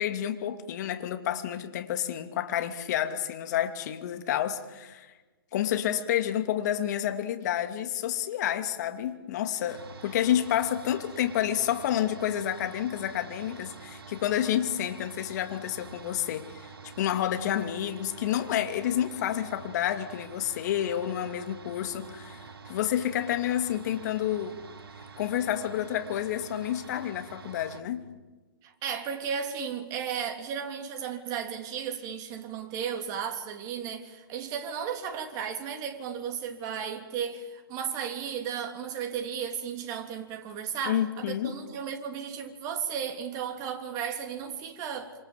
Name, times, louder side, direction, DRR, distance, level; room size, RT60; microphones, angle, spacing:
voice 1, 0.0-5.1 5.5-16.7 17.0-22.4 22.7-24.6 25.2-28.0 40.9-41.5, left 11 dB, 45° left, 2.6 m, -29 dB
sound 1, 9.7-27.8, right 5 dB, 80° right, 2.8 m, -47 dB
voice 2, 28.6-45.1, right 7 dB, 25° right, 3.3 m, -34 dB
27.0 x 26.5 x 7.5 m
hypercardioid pair, 140°, 13 cm